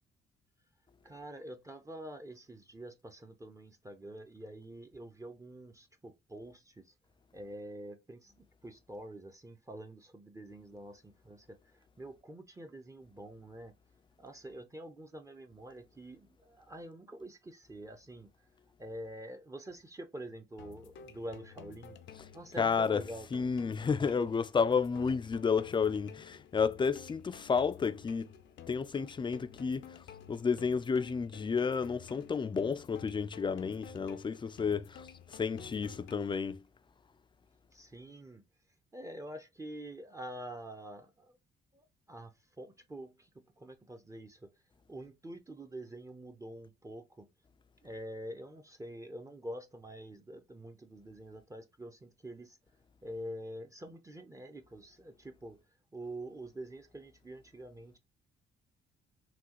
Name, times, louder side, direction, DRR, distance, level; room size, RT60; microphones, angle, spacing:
voice 1, 1.0-6.8 7.3-8.3 8.6-11.6 12.0-13.7 14.2-18.3 18.8-22.0 22.3-23.3 37.7-38.4 38.9-41.4 41.7-42.3 42.6-43.3 43.6-44.4 44.9-47.3 47.8-52.6 53.0-55.6 55.9-58.0, right 1 dB, 15° right, 0.7 m, -46 dB
sound 1, 20.6-36.6, left 8 dB, 70° left, 0.6 m, -52 dB
voice 2, 22.6-28.3 28.7-36.6, left 5 dB, 25° left, 0.5 m, -31 dB
6.0 x 2.4 x 2.9 m
cardioid pair, 90°, 20 cm